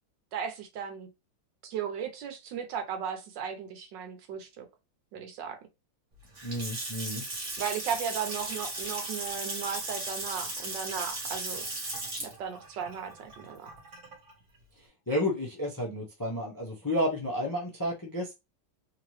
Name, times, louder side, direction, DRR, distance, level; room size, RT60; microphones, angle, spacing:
voice 1, 0.3-1.1 1.6-4.6 5.1-5.6 7.6-11.6 12.4-13.7, right 7 dB, 75° right, 1.4 m, -36 dB
Water tap faucet / Sink (filling or washing) / Splash splatter, 6.2-14.3, right 2 dB, 40° right, 1.6 m, -37 dB
voice 2, 6.4-7.2 15.1-18.3, left 1 dB, 20° left, 0.5 m, -31 dB
3.3 x 2.9 x 3.2 m
omnidirectional pair, 2.0 m